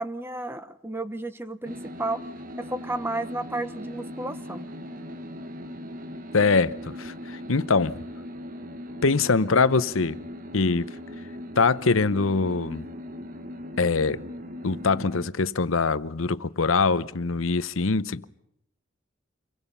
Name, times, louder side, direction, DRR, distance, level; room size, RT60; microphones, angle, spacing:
voice 1, 0.0-2.2 2.6-4.6, right 2 dB, 10° right, 1.0 m, -32 dB
sound 1, 1.6-15.3, equal, 40° right, 1.3 m, -39 dB
voice 2, 6.3-6.7 7.0-8.0 9.0-10.2 10.5-10.9 11.6-12.9 13.8-14.2 14.6-18.3, left 4 dB, 90° left, 0.8 m, -23 dB
27.5 x 23.5 x 5.6 m
head